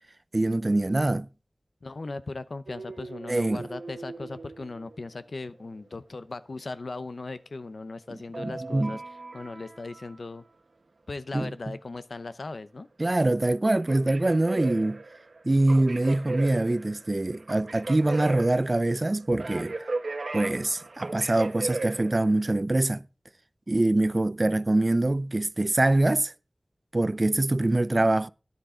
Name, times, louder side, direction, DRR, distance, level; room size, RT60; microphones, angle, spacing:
voice 1, 0.3-1.3 3.3-3.6 8.4-9.0 11.3-11.5 13.0-15.0 15.4-19.8 20.3-23.0 23.7-26.3 26.9-28.3, right 2 dB, 45° right, 0.4 m, -24 dB
voice 2, 1.8-9.0 9.3-10.4 11.1-12.9, left 3 dB, 85° left, 0.7 m, -38 dB
sound 1, 2.7-5.5 8.3-10.1 13.7-22.6, right 3 dB, 85° right, 1.3 m, -37 dB
13.0 x 9.9 x 3.8 m
wide cardioid pair, 55°, 0 cm